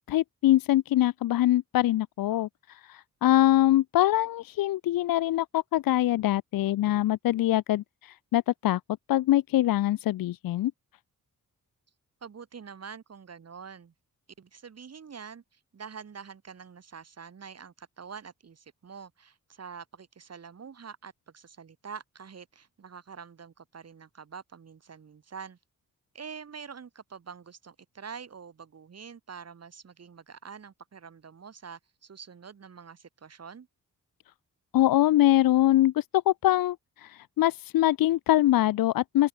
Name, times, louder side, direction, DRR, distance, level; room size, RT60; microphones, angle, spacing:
voice 1, 0.1-8.8 9.1-10.7 34.7-39.3, left 14 dB, 80° left, 0.5 m, -24 dB
voice 2, 12.2-13.9 14.4-25.6 26.1-33.7, right 6 dB, 45° right, 2.4 m, -45 dB
open air
wide cardioid pair, 130°, 34 cm